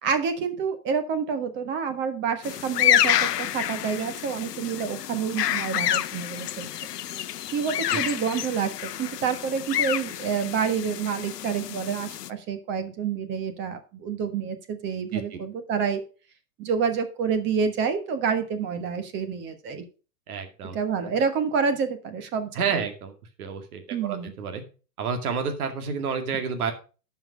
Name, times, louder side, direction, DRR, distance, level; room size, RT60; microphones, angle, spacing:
voice 1, 0.0-6.7 7.5-16.0 16.6-19.8 20.7-22.8 23.9-24.3, right 6 dB, 25° right, 9 dB, 1.3 m, -28 dB
sound 1, 2.4-12.3, left 12 dB, 80° left, 0.8 m, -28 dB
voice 2, 20.3-20.8 22.5-23.1 23.4-24.6 25.0-26.7, right 6 dB, 65° right, 6 dB, 2.2 m, -30 dB
11.0 x 5.8 x 5.0 m, 0.35 s
hypercardioid pair, 140°, 47 cm